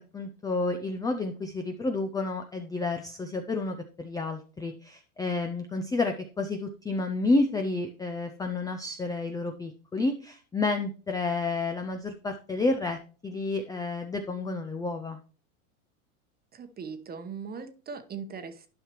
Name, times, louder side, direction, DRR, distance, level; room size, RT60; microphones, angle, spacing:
voice 1, 0.1-13.0 13.2-15.2, left 3 dB, 10° left, 5 dB, 0.5 m, -30 dB
voice 2, 16.5-18.7, right 5 dB, 20° right, 9 dB, 1.0 m, -39 dB
11.5 x 5.6 x 3.0 m, 0.37 s
hypercardioid pair, 105°, 44 cm